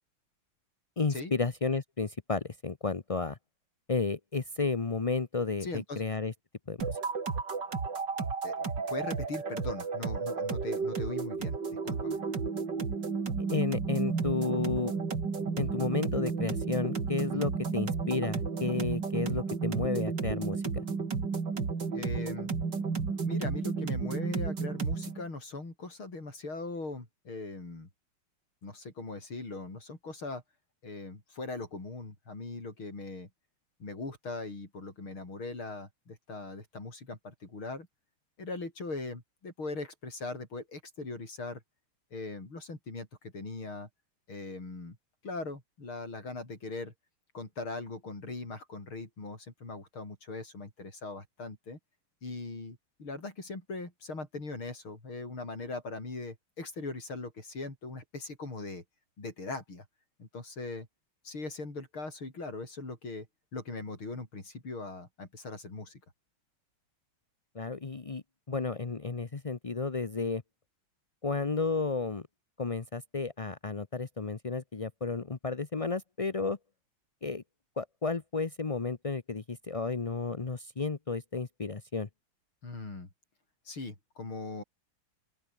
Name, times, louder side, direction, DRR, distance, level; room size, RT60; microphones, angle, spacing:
voice 1, 1.0-3.4 3.9-6.3 6.7-7.0 13.5-14.9 15.6-20.6 67.5-70.4 71.2-72.2 72.6-76.6 77.2-77.4 77.8-82.1, left 4 dB, 40° left, 0.4 m, -32 dB
voice 2, 5.6-6.0 8.4-8.6 8.9-12.2 17.3-17.4 21.9-22.5 23.3-27.9 28.6-30.4 30.8-33.3 33.8-37.9 38.4-41.6 42.1-43.9 44.3-45.0 45.2-46.9 47.3-51.8 52.2-58.8 59.2-59.9 60.2-60.9 61.2-63.3 63.5-66.0 82.6-83.1 83.7-84.6, left 3 dB, 75° left, 7.0 m, -40 dB
sound 1, 6.8-25.2, right 5 dB, 55° right, 3.5 m, -32 dB
open air
omnidirectional pair, 2.3 m